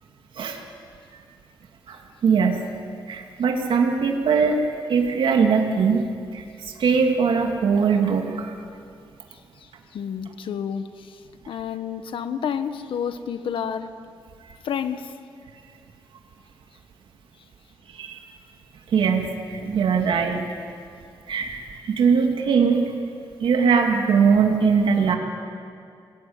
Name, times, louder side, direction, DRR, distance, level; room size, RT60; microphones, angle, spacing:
voice 1, 2.2-2.7 3.1-4.6 4.9-6.0 6.3-8.5 18.0-18.2 18.9-20.4 21.3-21.6 21.9-22.8 23.4-25.2, right 6 dB, 75° right, 2 dB, 2.6 m, -21 dB
voice 2, 9.9-11.2 11.5-14.0 14.6-15.1, left 8 dB, 80° left, 10 dB, 1.4 m, -29 dB
28.0 x 20.5 x 8.9 m, 2.4 s
wide cardioid pair, 115°, 9 cm